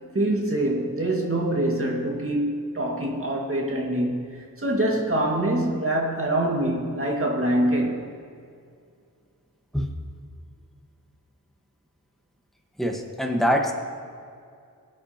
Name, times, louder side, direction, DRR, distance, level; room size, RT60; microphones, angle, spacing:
voice 1, 0.1-8.1, right 1 dB, 35° right, -2 dB, 2.0 m, -25 dB
voice 2, 12.8-13.7, equal, ahead, 2 dB, 1.4 m, -24 dB
20.5 x 8.6 x 2.9 m, 2.3 s
wide cardioid pair, 65°, 37 cm